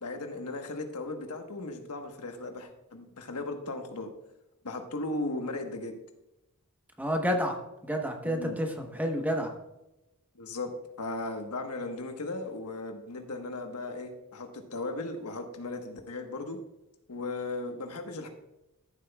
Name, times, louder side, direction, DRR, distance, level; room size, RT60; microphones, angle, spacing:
voice 1, 0.0-4.1 4.6-5.9 8.2-8.6 10.3-10.7 11.0-16.6 17.1-18.3, left 2 dB, 90° left, 5 dB, 1.2 m, -36 dB
voice 2, 7.0-7.6 7.8-9.5, equal, 5° right, 3 dB, 1.0 m, -29 dB
14.0 x 7.6 x 2.3 m, 0.91 s
head